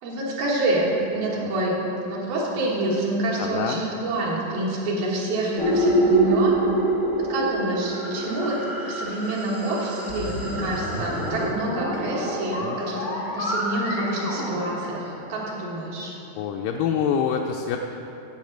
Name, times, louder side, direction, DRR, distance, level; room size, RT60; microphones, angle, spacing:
voice 1, 0.0-1.8 2.0-6.6 7.2-8.6 8.9-16.2, right 1 dB, 80° right, -4 dB, 3.4 m, -27 dB
voice 2, 3.4-3.8 12.6-12.8 16.4-17.8, left 7 dB, 80° left, 2 dB, 1.9 m, -25 dB
sound 1, 5.6-11.5, right 2 dB, ahead, 0.5 m, -25 dB
sound 2, 10.1-15.6, equal, 55° left, 0.9 m, -31 dB
10.5 x 4.9 x 7.8 m, 2.9 s
omnidirectional pair, 4.2 m